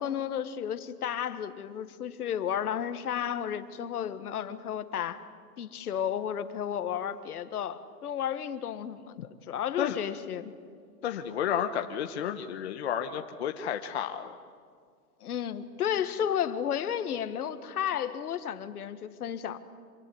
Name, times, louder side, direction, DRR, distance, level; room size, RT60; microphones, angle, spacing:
voice 1, 0.0-5.2 5.6-10.5 15.2-19.6, left 9 dB, 65° left, 11 dB, 1.7 m, -32 dB
voice 2, 11.0-14.3, left 9 dB, 40° left, 5 dB, 1.0 m, -31 dB
26.5 x 21.0 x 9.4 m, 2.1 s
hypercardioid pair, 180°, 49 cm